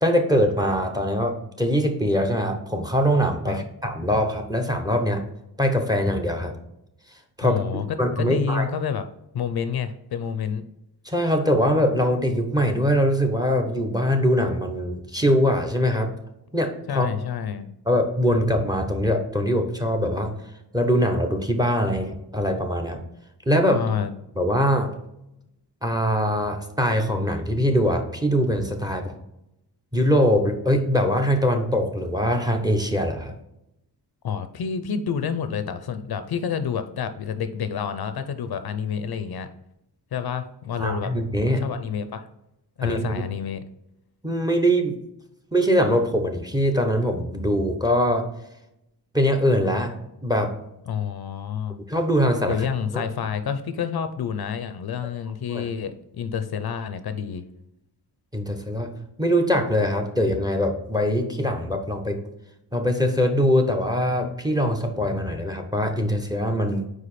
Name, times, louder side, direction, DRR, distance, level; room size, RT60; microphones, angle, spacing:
voice 1, 0.0-5.3 5.6-6.5 7.4-8.7 11.0-16.1 16.5-17.1 17.9-20.3 20.7-23.0 23.5-23.8 24.4-24.9 25.8-29.1 29.9-33.3 40.8-41.6 42.8-43.0 44.2-45.0 45.5-48.3 49.1-50.0 50.2-50.6 51.9-52.7 52.9-53.0 55.5-55.6 58.3-58.9 59.2-62.2 62.7-66.9, equal, 10° right, 5 dB, 0.8 m, -22 dB
voice 2, 7.4-9.0 9.3-10.6 16.9-17.7 23.7-24.1 34.2-39.5 40.1-41.1 41.6-42.3 42.8-43.6 50.9-51.8 52.5-57.4, left 7 dB, 65° left, 10 dB, 0.6 m, -28 dB
4.9 x 4.7 x 4.2 m, 0.85 s
wide cardioid pair, 115°, 41 cm